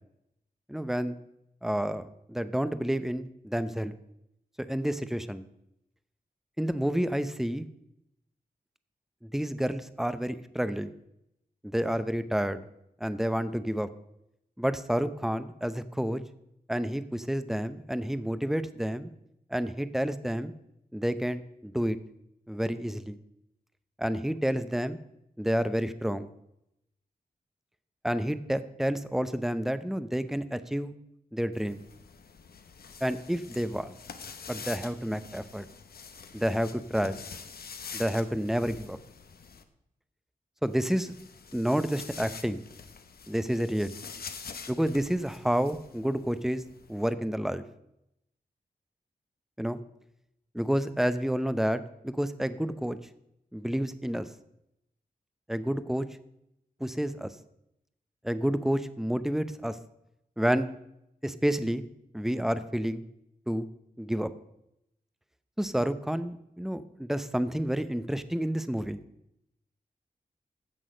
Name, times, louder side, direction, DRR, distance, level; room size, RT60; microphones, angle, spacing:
voice 1, 0.7-1.2 1.6-3.9 4.6-5.4 6.6-7.7 9.2-10.9 11.6-12.7 13.0-13.9 14.6-16.2 16.7-19.1 19.5-20.5 20.9-22.0 22.5-23.2 24.0-25.0 25.4-26.3 28.0-30.9 31.3-31.8 33.0-33.9 34.5-35.6 36.3-37.2 37.9-39.0 40.6-41.1 41.5-42.6 43.3-44.0 44.7-46.6 46.9-47.6 49.6-49.8 50.5-53.0 53.5-54.3 55.5-56.1 56.8-57.3 58.2-59.8 60.4-60.7 61.2-61.9 62.1-63.0 63.5-63.7 64.0-64.3 65.6-69.0, equal, ahead, 12 dB, 0.7 m, -29 dB
sound 1, 31.5-39.6 40.6-47.1, left 6 dB, 80° left, 0.9 m, -46 dB
15.5 x 6.2 x 5.1 m, 0.81 s
wide cardioid pair, 75°, 16 cm